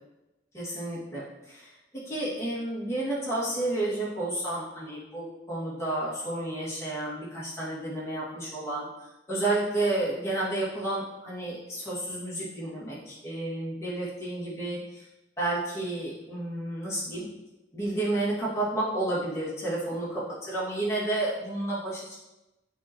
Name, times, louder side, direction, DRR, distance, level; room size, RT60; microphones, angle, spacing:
voice 1, 0.5-1.8 2.1-8.9 9.3-15.0 15.4-17.3 17.7-20.1 20.5-22.1, right 2 dB, 15° left, -9 dB, 2.1 m, -31 dB
8.2 x 4.4 x 3.0 m, 1.0 s
head